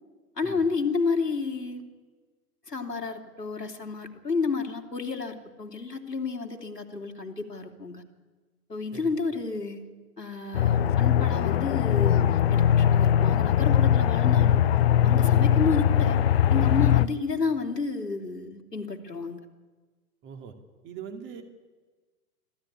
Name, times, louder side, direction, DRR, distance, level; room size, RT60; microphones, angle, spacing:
voice 1, 0.4-1.8 2.7-8.0 8.7-9.8 10.2-14.6 15.0-16.2 16.5-19.4, left 4 dB, 85° left, 3 dB, 3.1 m, -31 dB
Aircraft, 10.5-17.1, left 10 dB, 40° left, 0.7 m, -21 dB
voice 2, 20.2-20.5 20.8-21.4, right 7 dB, 25° right, 6 dB, 2.5 m, -41 dB
26.0 x 15.5 x 9.9 m, 1.3 s
figure-of-eight pair, 110°, 47 cm